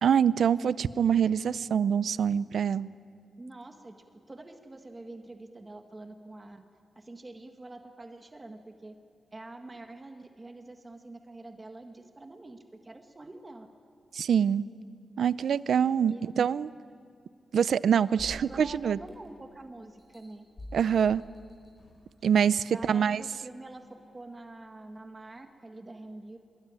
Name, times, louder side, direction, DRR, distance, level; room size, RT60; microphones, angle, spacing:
voice 1, 0.0-2.9 14.1-14.7 15.2-16.7 17.5-19.0 20.7-21.2 22.2-23.2, right 8 dB, 80° right, 17 dB, 0.6 m, -25 dB
voice 2, 3.4-6.6 7.0-9.0 9.3-13.7 16.1-16.3 18.4-20.5 22.7-23.8 24.1-26.4, right 2 dB, 25° right, 5 dB, 1.7 m, -46 dB
sound 1, 18.2-19.5 20.0-22.1 22.7-22.8, left 1 dB, 35° left, 4.7 m, -47 dB
25.0 x 21.5 x 9.8 m, 2.3 s
wide cardioid pair, 115°, 0 cm